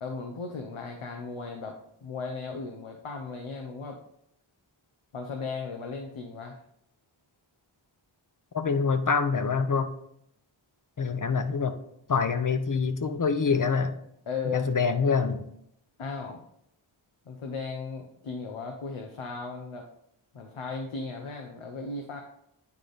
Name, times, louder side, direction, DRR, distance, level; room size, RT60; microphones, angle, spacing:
voice 1, 0.0-4.0 5.1-6.6 14.3-14.7 16.0-16.4 17.3-19.9 20.3-22.2, left 4 dB, 85° left, 3 dB, 0.8 m, -36 dB
voice 2, 8.5-9.9 11.0-11.8 12.1-13.9 14.5-15.4, left 5 dB, 40° left, 9 dB, 0.7 m, -25 dB
9.5 x 3.4 x 4.0 m, 0.75 s
wide cardioid pair, 60°, 49 cm